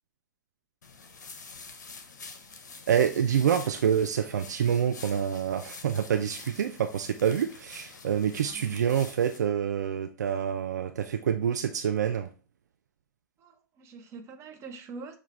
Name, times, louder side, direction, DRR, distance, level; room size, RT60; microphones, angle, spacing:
sound 1, 0.8-9.4, left 4 dB, 65° left, 0.6 m, -47 dB
voice 1, 2.9-12.3, right 8 dB, 65° right, 0.4 m, -27 dB
voice 2, 13.4-15.2, right 4 dB, 25° right, 0.7 m, -44 dB
6.4 x 2.3 x 3.3 m
figure-of-eight pair, 95°, 10 cm